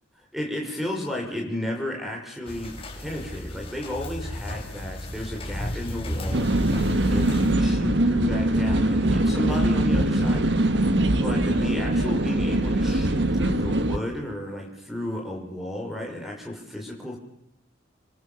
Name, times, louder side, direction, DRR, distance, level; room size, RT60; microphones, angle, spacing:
voice 1, 0.3-10.5 10.8-17.2, left 1 dB, ahead, 0 dB, 6.0 m, -33 dB
sound 1, 2.5-7.6, left 1 dB, 30° left, 5.6 m, -34 dB
sound 2, 6.3-14.0, right 1 dB, 60° right, 1.7 m, -22 dB
28.0 x 22.5 x 7.1 m, 0.81 s
head